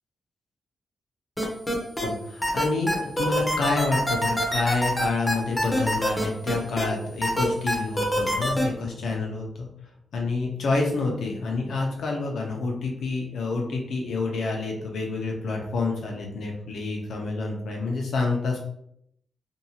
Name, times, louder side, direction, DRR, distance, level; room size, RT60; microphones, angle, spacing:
sound 1, 1.4-2.1 2.4-6.8 7.2-8.6, equal, 10° left, 0.6 m, -25 dB
voice 1, 2.0-9.7 10.1-18.6, left 3 dB, 75° left, 1 dB, 0.6 m, -28 dB
2.6 x 2.3 x 2.8 m, 0.73 s
wide cardioid pair, 155°, 0 cm